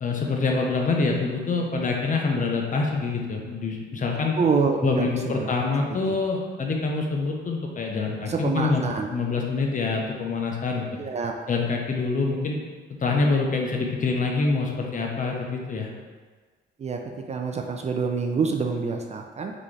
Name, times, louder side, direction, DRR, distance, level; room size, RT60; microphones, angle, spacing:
voice 1, 0.0-4.3 4.8-10.9 11.5-12.6 13.0-15.9, left 3 dB, 40° left, 1 dB, 0.7 m, -25 dB
voice 2, 4.4-5.5 6.1-6.2 8.2-9.1 11.0-11.3 16.8-17.0 17.3-19.5, right 5 dB, 35° right, 3 dB, 0.4 m, -26 dB
4.0 x 3.5 x 3.2 m, 1.5 s
cardioid pair, 90°, 20 cm